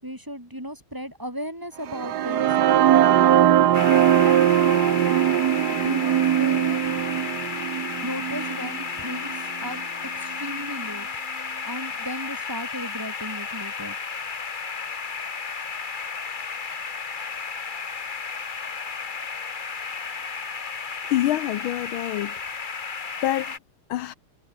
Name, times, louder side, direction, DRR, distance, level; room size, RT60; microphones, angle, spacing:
voice 1, 0.0-2.6 3.9-5.1 5.7-6.8 8.0-9.3 9.6-9.8 10.2-11.1 11.6-13.9, equal, 10° right, 5.9 m, -35 dB
sound 1, 1.9-9.8, right 11 dB, 60° right, 1.2 m, -20 dB
sound 2, 3.7-23.6, left 5 dB, 30° left, 1.0 m, -33 dB
voice 2, 21.1-22.3 23.2-23.5 23.9-24.1, left 14 dB, 75° left, 1.5 m, -26 dB
omnidirectional pair, 2.3 m